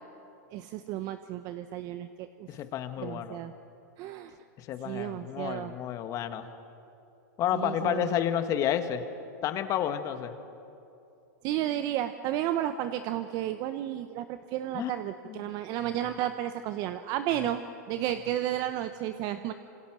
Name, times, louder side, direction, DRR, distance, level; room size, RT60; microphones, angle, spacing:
voice 1, 0.5-2.5 3.0-3.5 4.0-4.3 4.8-5.7 7.5-8.1 11.4-19.5, right 12 dB, 45° right, 10 dB, 0.9 m, -32 dB
voice 2, 2.5-3.4 4.6-6.5 7.4-9.0 9.4-10.3 14.7-14.9 15.3-15.5 15.8-15.9 17.4-17.5, left 10 dB, 35° left, 9 dB, 1.7 m, -31 dB
27.0 x 26.5 x 6.3 m, 2.8 s
hypercardioid pair, 130°, 9 cm